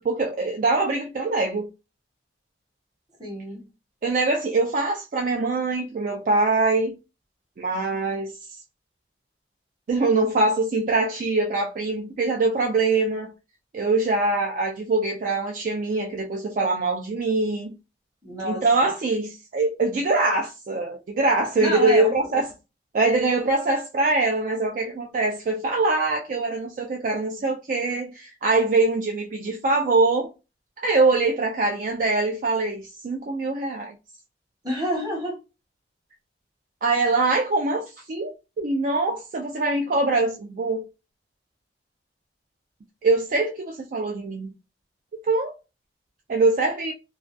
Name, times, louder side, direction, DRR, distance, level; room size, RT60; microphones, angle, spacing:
voice 1, 0.0-1.7 4.0-6.9 7.6-8.3 9.9-13.3 13.7-17.7 18.4-22.5 22.9-30.3 30.8-33.9 36.8-40.8 43.0-44.5 45.3-45.5 46.3-46.9, right 3 dB, 50° right, 0.3 m, -23 dB
voice 2, 3.2-3.6 18.2-18.9 21.6-22.1 34.6-35.4 37.0-37.1, equal, 20° right, 0.9 m, -28 dB
2.3 x 2.2 x 2.4 m
head